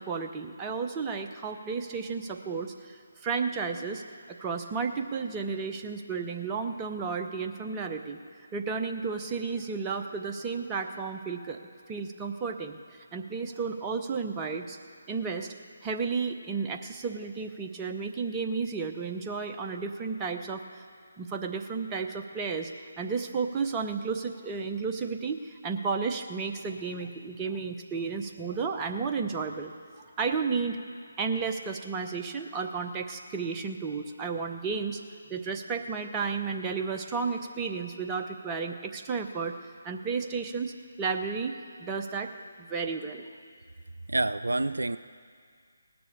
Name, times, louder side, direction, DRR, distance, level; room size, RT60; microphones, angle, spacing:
voice 1, 0.0-4.0 4.4-8.2 8.5-11.6 11.9-14.8 15.1-15.5 15.8-20.8 21.2-22.7 23.0-29.7 30.2-30.8 31.2-35.0 35.3-39.6 39.8-40.7 41.0-41.5 41.8-42.3 42.6-43.2, right 5 dB, 15° right, 4 dB, 0.7 m, -32 dB
voice 2, 44.1-45.0, right 2 dB, 70° right, 13 dB, 0.3 m, -27 dB
18.0 x 6.9 x 8.5 m, 2.1 s
figure-of-eight pair, 145°, 0 cm